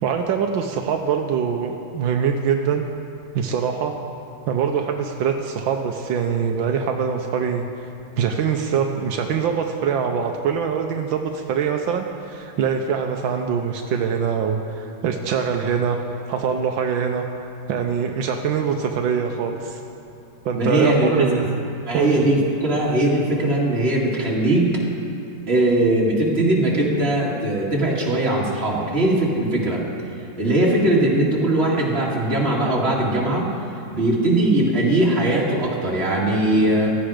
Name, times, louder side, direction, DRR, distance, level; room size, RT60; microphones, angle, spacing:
voice 1, 0.0-2.8 3.3-3.9 4.5-7.6 8.2-16.0 16.3-17.2 17.7-19.8 20.4-21.6 21.9-22.2, right 7 dB, 80° right, 4 dB, 1.5 m, -23 dB
voice 2, 20.5-21.4 21.8-24.7 25.5-29.8 30.4-33.4 33.9-37.0, right 1 dB, 30° right, -4 dB, 2.5 m, -20 dB
16.0 x 13.0 x 5.0 m, 2.9 s
omnidirectional pair, 2.1 m